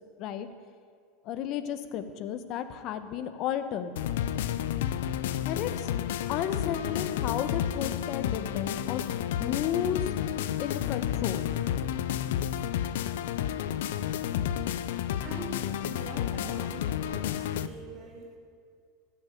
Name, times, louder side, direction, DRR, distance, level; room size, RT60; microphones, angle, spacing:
voice 1, 1.2-3.9 5.4-6.0 6.3-9.0 9.4-10.1 10.6-11.5 14.4-14.5, left 9 dB, 50° left, 10 dB, 1.1 m, -33 dB
sound 1, 4.0-17.7, left 10 dB, 85° left, 0.6 m, -31 dB
voice 2, 15.2-18.4, right 3 dB, 40° right, -1 dB, 2.8 m, -44 dB
14.0 x 7.1 x 10.0 m, 2.2 s
supercardioid pair, 130°, 0 cm